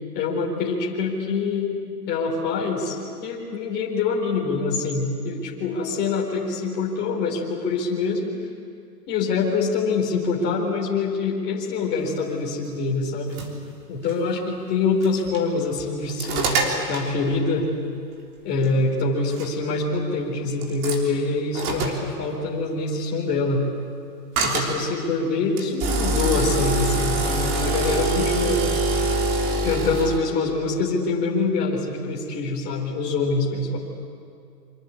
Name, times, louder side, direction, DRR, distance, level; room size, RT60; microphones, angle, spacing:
voice 1, 0.1-8.4 9.1-13.4 13.9-17.7 18.4-23.6 24.4-28.7 29.6-33.8, left 4 dB, 20° left, -2 dB, 4.4 m, -25 dB
sound 1, 13.1-13.5 14.1-14.2 15.0-15.4 15.8-17.1 18.6-18.7 19.3-19.5 20.6-21.0 21.5-22.0 24.4-24.7 25.6-30.2, right 2 dB, 30° right, 3.4 m, -24 dB
27.5 x 25.0 x 8.5 m, 2.4 s
hypercardioid pair, 150°, 50 cm